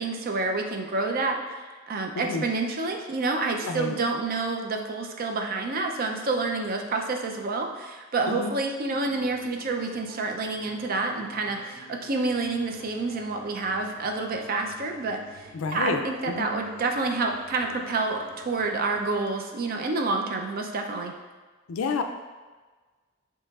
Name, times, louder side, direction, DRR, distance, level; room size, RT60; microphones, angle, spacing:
voice 1, 0.0-21.1, right 3 dB, 45° right, 3 dB, 0.5 m, -28 dB
voice 2, 3.6-4.0 8.3-8.5 15.5-16.5 21.7-22.0, left 4 dB, 90° left, 6 dB, 0.4 m, -29 dB
sound 1, 8.9-19.2, right 1 dB, 80° right, 0.8 m, -51 dB
6.9 x 2.9 x 2.4 m, 1.3 s
head